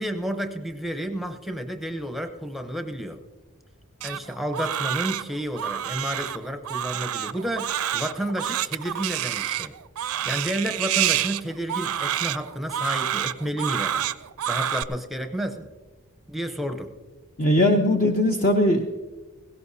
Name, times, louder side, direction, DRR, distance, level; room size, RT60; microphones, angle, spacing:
voice 1, 0.0-3.2 4.0-9.7 10.2-14.1 14.5-15.7 16.3-16.9, equal, ahead, 6 dB, 0.8 m, -31 dB
Crying sobbing, 4.0-14.8, right 11 dB, 75° right, 0.5 m, -28 dB
voice 2, 17.4-18.9, left 1 dB, 35° left, 3 dB, 0.8 m, -20 dB
17.0 x 16.5 x 2.7 m, 1.2 s
head